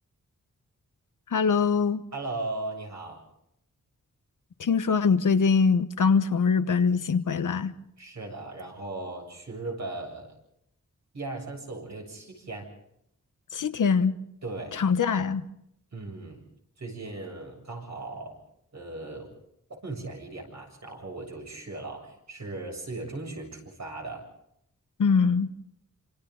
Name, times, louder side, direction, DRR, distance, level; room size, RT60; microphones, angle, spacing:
voice 1, 1.3-2.0 4.6-7.7 13.5-14.2 14.7-15.4 25.0-25.5, left 5 dB, 80° left, 1.1 m, -23 dB
voice 2, 2.1-3.2 8.0-10.3 11.1-12.7 14.4-14.8 15.9-16.4 16.8-18.4 18.7-19.3 19.7-24.2, right 2 dB, 60° right, 7.7 m, -37 dB
28.0 x 27.0 x 4.0 m
wide cardioid pair, 125°, 31 cm